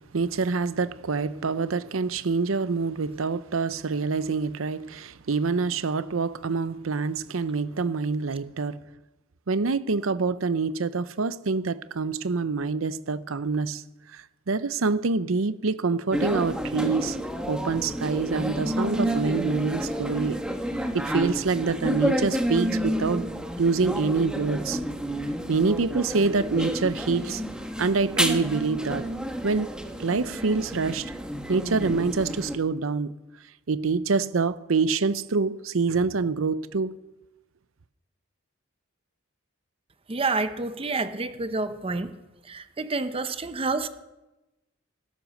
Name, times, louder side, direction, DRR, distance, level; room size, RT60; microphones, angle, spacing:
voice 1, 0.1-8.8 9.5-13.8 14.5-17.2 17.5-20.4 20.9-23.3 23.6-24.8 25.5-27.4 27.8-29.1 29.4-29.7 30.0-31.1 31.5-33.1 33.7-36.9, right 4 dB, 90° right, 0.7 m, -26 dB
sound 1, 16.1-32.6, equal, 5° right, 1.2 m, -30 dB
voice 2, 40.1-42.1 42.5-43.9, right 3 dB, 30° right, 0.8 m, -28 dB
15.5 x 13.0 x 6.5 m
head